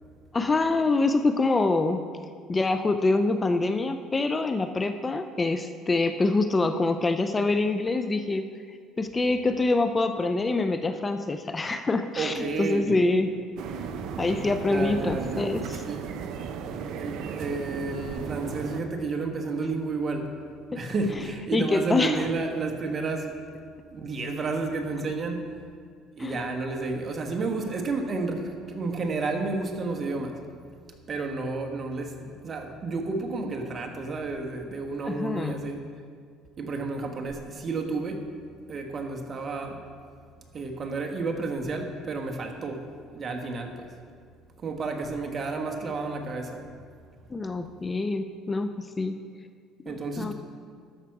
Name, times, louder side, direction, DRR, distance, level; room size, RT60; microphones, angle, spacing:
voice 1, 0.3-2.0 2.5-8.4 9.0-13.3 14.2-15.8 21.5-22.3 26.2-26.4 35.0-35.6 47.3-49.2 49.9-50.3, left 3 dB, 25° left, 9 dB, 0.5 m, -25 dB
voice 2, 12.2-13.0 14.7-15.6 15.8-16.1 17.0-20.4 20.7-25.6 26.2-30.4 31.1-35.8 36.6-38.2 38.7-39.8 40.5-43.9 44.6-46.6 49.8-50.3, right 3 dB, 35° right, 3 dB, 1.3 m, -31 dB
sound 1, 13.6-18.8, right 6 dB, 65° right, 0.7 m, -35 dB
13.0 x 5.8 x 4.8 m, 2.1 s
supercardioid pair, 95°, 0 cm